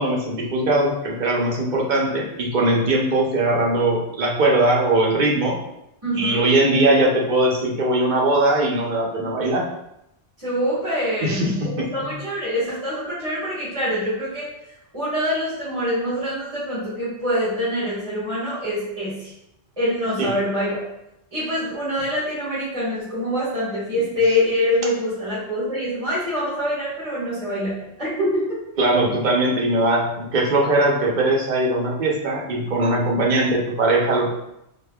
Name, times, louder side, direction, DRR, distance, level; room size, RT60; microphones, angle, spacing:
voice 1, 0.0-5.6 6.1-9.7 11.2-11.5 12.0-12.1 20.2-20.3 28.8-34.3, right 2 dB, 45° right, -3 dB, 0.8 m, -20 dB
voice 2, 6.0-6.4 10.4-14.5 14.9-19.3 19.8-20.8 21.3-28.6, equal, 30° right, -12 dB, 1.6 m, -25 dB
5.0 x 2.2 x 2.3 m, 0.83 s
omnidirectional pair, 1.2 m